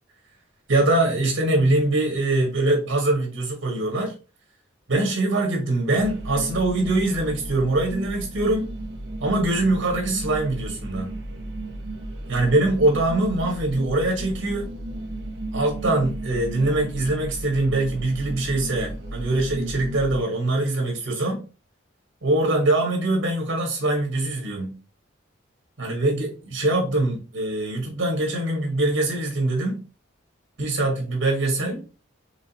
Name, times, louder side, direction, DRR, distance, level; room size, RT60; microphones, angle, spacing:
voice 1, 0.7-4.1 4.9-8.7 9.2-11.1 12.3-14.7 15.5-21.4 22.2-24.7 25.8-29.8 30.6-31.8, right 2 dB, 85° right, 1 dB, 1.5 m, -23 dB
sound 1, 6.0-20.2, right 1 dB, 60° right, 0.7 m, -34 dB
5.0 x 3.1 x 2.9 m, 0.34 s
head